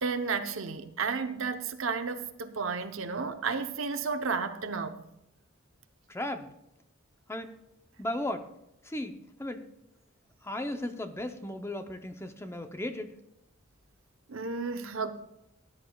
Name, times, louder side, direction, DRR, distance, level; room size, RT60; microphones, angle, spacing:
voice 1, 0.0-5.0 14.3-15.1, right 5 dB, 75° right, 0.8 m, -32 dB
voice 2, 6.1-6.5 7.3-7.5 8.0-8.5 8.8-9.1 9.4-9.6 10.4-13.1, left 1 dB, 10° left, 0.6 m, -35 dB
18.0 x 10.0 x 2.3 m
head